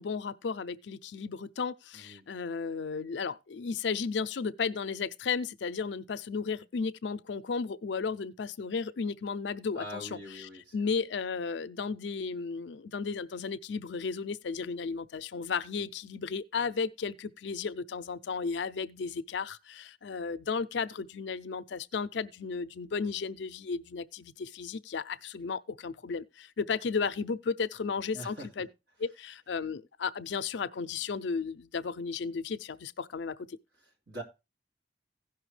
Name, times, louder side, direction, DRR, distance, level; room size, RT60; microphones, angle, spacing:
voice 1, 0.0-10.2 10.7-28.7 29.0-33.6, left 5 dB, 70° left, 0.5 m, -34 dB
voice 2, 1.9-2.2 9.7-10.9 28.1-28.5 33.8-34.2, equal, 65° right, 2.7 m, -43 dB
16.5 x 5.7 x 3.2 m
head